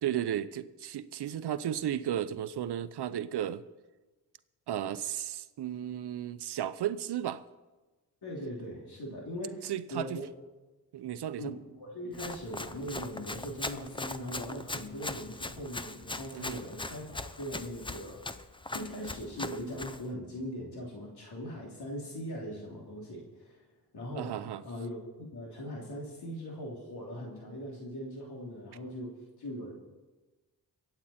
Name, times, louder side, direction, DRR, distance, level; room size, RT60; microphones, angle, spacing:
voice 1, 0.0-3.6 4.7-7.4 9.6-10.2 10.9-11.5 16.3-16.6 24.1-24.6, right 10 dB, 80° right, 13 dB, 0.7 m, -34 dB
voice 2, 8.2-10.2 11.4-18.2 18.7-23.6 23.9-29.7, equal, 75° left, -2 dB, 3.1 m, -40 dB
Run, 12.1-20.0, left 2 dB, 15° left, 0.6 m, -40 dB
24.0 x 8.8 x 4.3 m, 1.2 s
cardioid pair, 90°, 39 cm